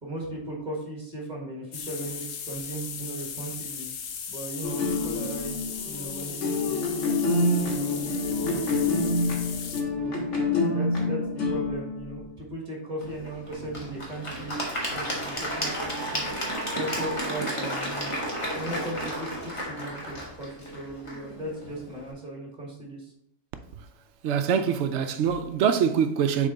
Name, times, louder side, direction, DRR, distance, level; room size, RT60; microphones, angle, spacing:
voice 1, 0.0-3.9 4.3-9.4 9.9-10.2 10.7-16.3 16.7-18.2 18.5-23.1, right 1 dB, 35° right, 1.6 m, -37 dB
sound 1, 1.7-9.8, left 7 dB, 85° left, 1.1 m, -37 dB
sound 2, 4.6-12.3, left 2 dB, 70° left, 1.8 m, -27 dB
Applause / Crowd, 13.0-22.1, equal, 25° left, 1.3 m, -33 dB
voice 2, 24.2-26.5, right 7 dB, 70° right, 0.8 m, -24 dB
6.8 x 3.5 x 3.9 m
omnidirectional pair, 1.3 m